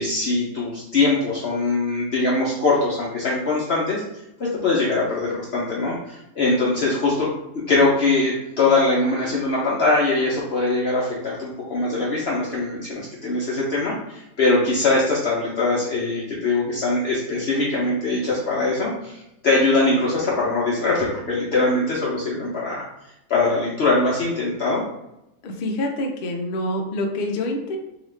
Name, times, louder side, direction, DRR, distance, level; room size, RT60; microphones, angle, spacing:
voice 1, 0.0-4.0 4.4-7.3 7.7-22.9 23.3-24.8, left 3 dB, 60° left, -5 dB, 0.7 m, -22 dB
voice 2, 25.4-27.8, left 1 dB, 90° left, 2 dB, 0.4 m, -26 dB
2.9 x 2.4 x 3.2 m, 0.89 s
omnidirectional pair, 1.5 m